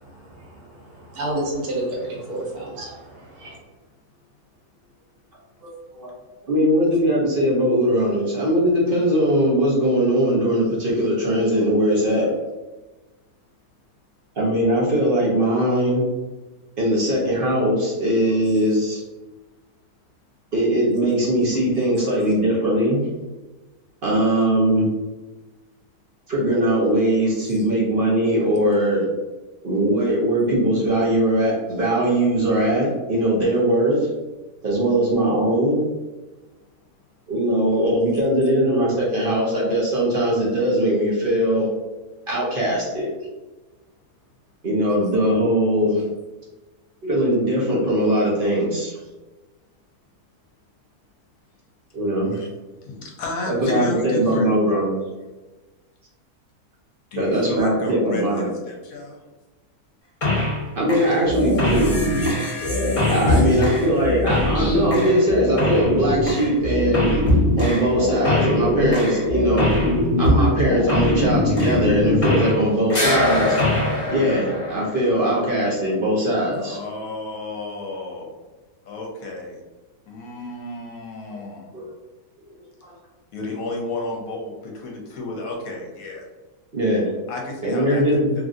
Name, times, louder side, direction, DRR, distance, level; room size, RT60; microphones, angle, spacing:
voice 1, 0.0-1.2 2.5-2.6 22.0-22.1 27.5-27.6 52.3-52.5 52.8-54.6 57.1-59.2 63.2-63.8 76.5-78.3 78.8-79.6 80.1-81.8 83.3-86.3 87.3-88.3, left 2 dB, 70° left, 0 dB, 1.0 m, -32 dB
voice 2, 1.1-3.6, right 1 dB, 75° right, -3 dB, 1.5 m, -29 dB
voice 3, 5.6-6.1 6.5-12.3 14.4-16.0 16.8-19.0 20.5-23.0 24.0-24.9 26.3-29.1 29.6-34.1 34.6-35.8 37.3-41.7 42.3-43.1 44.6-46.0 47.0-49.0 51.9-52.3 53.5-55.0 57.2-58.5 60.7-62.0 63.1-67.2 67.6-69.8 70.2-73.6 74.1-76.8 81.3-81.4 81.7-81.9 82.8-82.9 86.7-87.1 87.6-88.3, right 1 dB, 50° right, -5 dB, 0.6 m, -20 dB
sound 1, 60.2-60.6 60.9-72.6 72.9-75.1, left 1 dB, 35° left, 1.0 m, -21 dB
3.0 x 2.5 x 2.5 m, 1.2 s
omnidirectional pair, 1.6 m